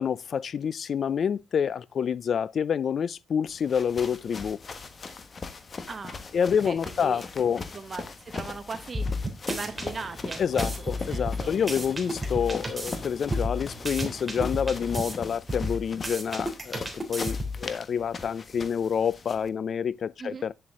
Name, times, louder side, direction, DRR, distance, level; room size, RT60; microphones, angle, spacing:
voice 1, 0.0-4.6 6.3-7.6 10.4-20.5, left 7 dB, 60° left, 0.4 m, -28 dB
sound 1, 3.5-19.5, left 4 dB, 40° left, 1.4 m, -40 dB
voice 2, 5.9-7.2 7.7-10.7 11.1-11.8 20.2-20.5, right 4 dB, 40° right, 1.0 m, -39 dB
sound 2, 8.9-9.9 10.3-13.0 13.3-15.1 15.5-17.6, left 1 dB, 15° right, 3.1 m, -32 dB
sound 3, 9.6-15.3, equal, 15° left, 5.4 m, -46 dB
9.8 x 7.7 x 3.6 m
cardioid pair, 105°, 0 cm